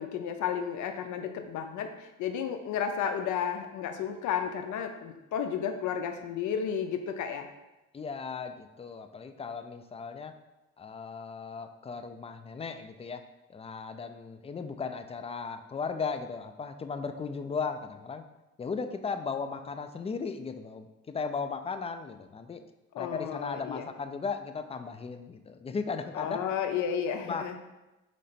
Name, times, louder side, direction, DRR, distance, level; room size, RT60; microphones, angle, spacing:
voice 1, 0.0-7.5 22.9-23.9 26.1-27.6, left 8 dB, 75° left, 6 dB, 0.5 m, -32 dB
voice 2, 7.9-10.3 10.8-13.2 13.5-18.2 18.6-22.6 23.0-26.4 27.3-27.6, left 5 dB, 20° left, 8 dB, 0.3 m, -36 dB
3.8 x 3.2 x 4.1 m, 1.0 s
cardioid pair, 90°, 30 cm